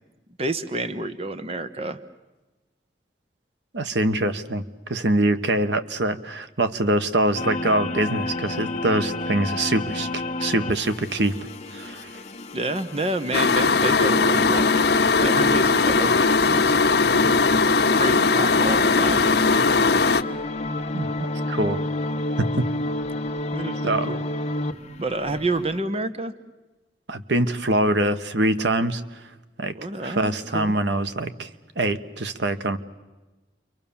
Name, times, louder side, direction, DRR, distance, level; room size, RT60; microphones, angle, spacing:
voice 1, 0.4-2.0 12.5-17.0 17.9-19.3 23.5-24.2 25.0-26.3 29.7-30.7, right 2 dB, 35° right, 11 dB, 1.1 m, -29 dB
voice 2, 3.7-11.3 11.7-12.1 20.9-21.1 21.5-21.8 23.8-24.1 27.1-29.0 29.6-31.5 31.8-32.8, right 1 dB, 85° right, 10 dB, 1.4 m, -24 dB
sound 1, 7.3-25.8, left 2 dB, 35° left, 1.3 m, -30 dB
sound 2, 13.3-20.2, left 4 dB, 70° left, 1.1 m, -19 dB
30.0 x 24.5 x 7.2 m, 1.1 s
head